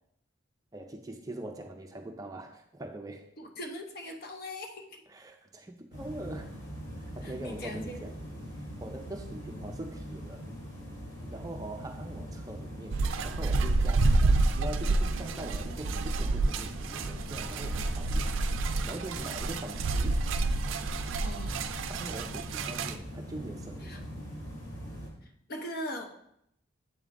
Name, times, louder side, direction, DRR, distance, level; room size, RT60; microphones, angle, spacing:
voice 1, 0.7-3.2 5.1-6.6 7.0-8.1 8.8-10.4 11.3-18.3 18.8-20.3 21.9-24.1, right 1 dB, 20° right, 4 dB, 0.4 m, -42 dB
voice 2, 3.4-4.9 7.2-8.1 21.2-21.6 23.8-24.0 25.5-26.0, left 1 dB, 50° left, 3 dB, 0.8 m, -39 dB
sound 1, 5.9-25.1, equal, 70° left, 2.3 m, -42 dB
sound 2, 12.9-23.0, right 3 dB, 85° right, 0.4 m, -29 dB
7.8 x 3.6 x 3.7 m, 0.75 s
head